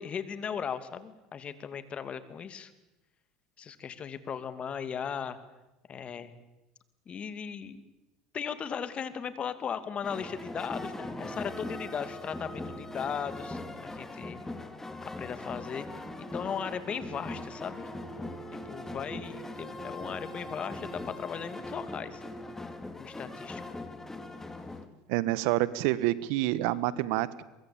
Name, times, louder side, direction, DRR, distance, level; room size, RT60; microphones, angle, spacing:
voice 1, 0.0-2.7 3.6-5.4 5.9-6.3 7.1-7.8 8.3-14.4 15.0-15.9 16.2-17.9 18.5-22.2 22.9-23.6, left 7 dB, 40° left, 12 dB, 2.7 m, -37 dB
sound 1, 10.0-24.9, left 2 dB, 10° left, 3.1 m, -41 dB
sound 2, 10.1-14.0 15.9-22.5, right 6 dB, 40° right, 6.6 m, -48 dB
voice 2, 25.1-27.4, right 16 dB, 70° right, 18 dB, 1.4 m, -28 dB
23.5 x 23.0 x 8.8 m, 0.99 s
hypercardioid pair, 85°, 3 cm